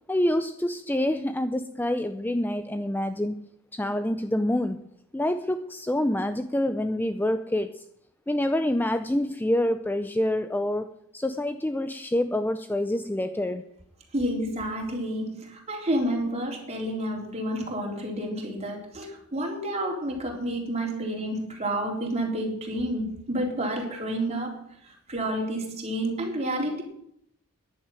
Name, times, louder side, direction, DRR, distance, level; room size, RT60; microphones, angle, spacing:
voice 1, 0.1-3.3 3.8-4.8 5.1-7.7 8.3-10.9 11.1-13.6, left 1 dB, 10° left, 9 dB, 0.5 m, -26 dB
voice 2, 14.1-24.5 25.1-26.8, right 1 dB, 30° right, 0 dB, 3.9 m, -29 dB
11.0 x 10.0 x 9.0 m, 0.72 s
head